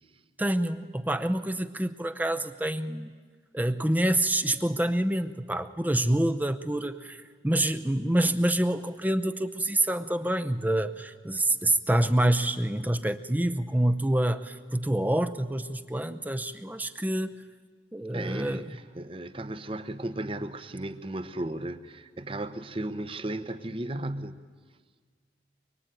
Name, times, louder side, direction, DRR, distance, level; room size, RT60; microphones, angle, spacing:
voice 1, 0.4-3.1 3.5-17.3 17.9-18.7, right 1 dB, 10° right, 10 dB, 0.7 m, -27 dB
voice 2, 18.1-24.4, right 1 dB, 30° right, 12 dB, 1.0 m, -35 dB
23.5 x 23.5 x 9.3 m, 1.5 s
head